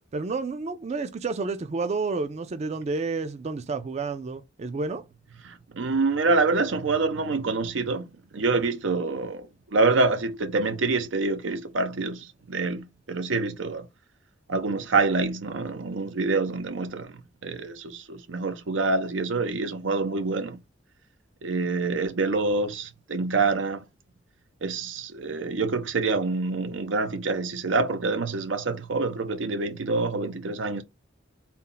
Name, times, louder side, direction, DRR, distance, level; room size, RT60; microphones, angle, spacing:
voice 1, 0.1-5.0, right 4 dB, 35° right, 0.4 m, -30 dB
voice 2, 5.4-13.9 14.5-17.1 17.4-20.6 21.4-23.8 24.6-30.8, right 3 dB, 90° right, 0.7 m, -26 dB
4.2 x 2.1 x 3.8 m
head